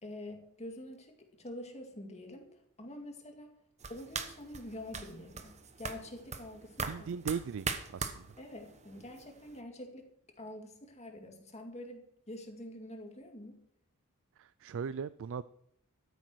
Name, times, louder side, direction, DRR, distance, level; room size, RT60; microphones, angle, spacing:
voice 1, 0.0-3.5 3.9-7.1 8.4-10.0 10.4-13.6, left 1 dB, 30° left, 3 dB, 2.2 m, -46 dB
sound 1, 3.8-9.6, right 5 dB, 30° right, 1.1 m, -42 dB
voice 2, 6.9-7.7 7.9-8.3 14.4-15.4, right 6 dB, 60° right, 16 dB, 0.4 m, -38 dB
13.0 x 9.3 x 6.2 m, 0.73 s
head